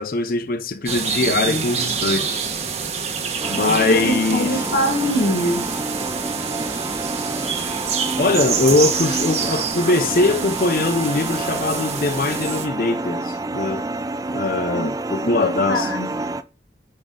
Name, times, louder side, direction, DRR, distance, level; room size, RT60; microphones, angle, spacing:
voice 1, 0.0-2.4 3.5-4.6 8.2-13.9 14.3-15.9, left 3 dB, 50° left, 0.6 m, -21 dB
sound 1, 0.9-12.7, right 6 dB, 35° right, 1.2 m, -27 dB
voice 2, 1.5-2.2 3.8-5.7 14.7-14.9 15.2-16.3, equal, 70° left, 1.9 m, -24 dB
sound 2, 3.4-16.4, right 2 dB, 20° right, 0.4 m, -28 dB
9.1 x 5.1 x 3.8 m
head